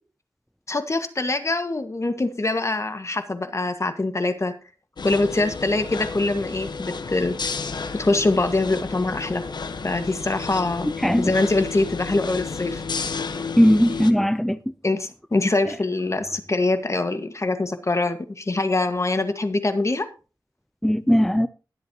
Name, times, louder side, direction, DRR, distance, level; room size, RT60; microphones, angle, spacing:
voice 1, 0.7-4.5 5.0-7.4 7.9-9.4 9.8-10.9 11.2-12.8 14.8-20.1, left 2 dB, 40° left, 1.7 m, -24 dB
sound 1, 5.0-14.1, left 5 dB, 80° left, 1.2 m, -32 dB
voice 2, 11.0-11.3 13.6-14.6 20.8-21.5, equal, 5° left, 0.5 m, -18 dB
21.0 x 7.8 x 2.9 m
wide cardioid pair, 65°, 7 cm